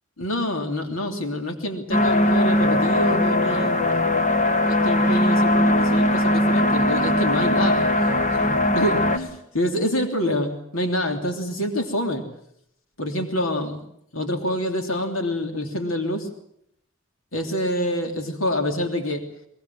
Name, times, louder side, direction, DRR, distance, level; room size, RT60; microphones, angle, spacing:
voice 1, 0.2-4.3 4.7-12.2 13.0-13.8 14.1-16.3 17.3-19.2, left 1 dB, 80° left, 4 dB, 3.1 m, -27 dB
sound 1, 1.9-9.2, left 1 dB, 35° left, 1.9 m, -20 dB
22.5 x 21.5 x 7.7 m, 0.74 s
head